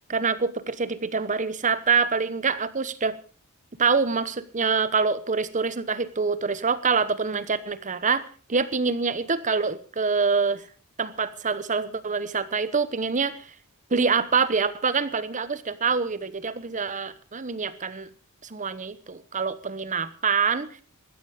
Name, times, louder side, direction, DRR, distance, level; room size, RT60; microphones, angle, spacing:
voice 1, 0.1-3.1 3.8-10.6 11.0-13.4 13.9-18.1 18.5-20.7, right 5 dB, 35° right, 14 dB, 1.0 m, -25 dB
15.5 x 13.5 x 5.1 m, 0.39 s
head